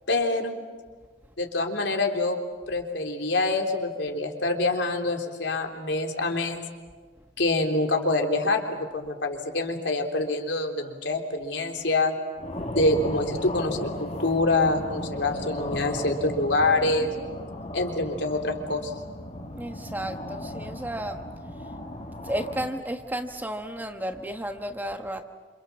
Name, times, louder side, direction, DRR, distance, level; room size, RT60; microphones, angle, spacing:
voice 1, 0.1-0.5 1.4-2.4 2.7-6.6 7.4-12.2 12.7-17.1 17.7-18.9, left 2 dB, 70° left, 3 dB, 3.6 m, -26 dB
sound 1, 12.4-22.7, left 1 dB, 35° left, 2.9 m, -36 dB
voice 2, 19.6-21.3 22.2-25.2, right 1 dB, 10° right, 6 dB, 1.3 m, -33 dB
28.0 x 28.0 x 7.4 m, 1.4 s
head